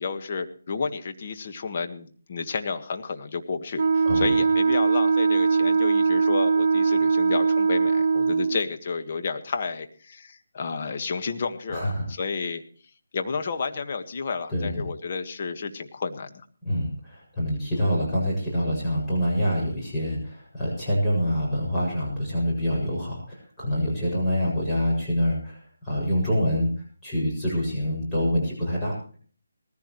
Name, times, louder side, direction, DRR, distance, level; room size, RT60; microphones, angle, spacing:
voice 1, 0.0-12.6 13.1-16.4, left 5 dB, 40° left, 6 dB, 1.7 m, -31 dB
Wind instrument woodwind instrument, 3.8-8.6, right 5 dB, 40° right, 1.8 m, -21 dB
voice 2, 11.7-12.1 14.5-14.9 16.6-26.7 27.0-28.9, equal, 5° left, -9 dB, 7.2 m, -26 dB
19.5 x 15.0 x 3.2 m, 0.43 s
figure-of-eight pair, 160°, 0 cm